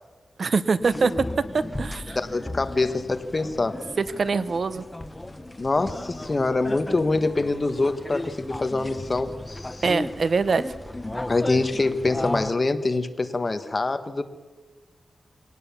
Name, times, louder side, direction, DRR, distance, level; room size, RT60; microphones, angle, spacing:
voice 1, 0.4-1.1 1.5-2.2 4.0-4.8 9.8-10.7, right 4 dB, 55° right, 14 dB, 0.8 m, -23 dB
sound 1, 0.8-12.5, left 1 dB, 15° left, 1.0 m, -35 dB
voice 2, 2.1-3.8 5.6-9.8 11.3-14.2, left 3 dB, 35° left, 9 dB, 1.3 m, -25 dB
22.5 x 18.0 x 7.1 m, 1.3 s
wide cardioid pair, 115°, 0 cm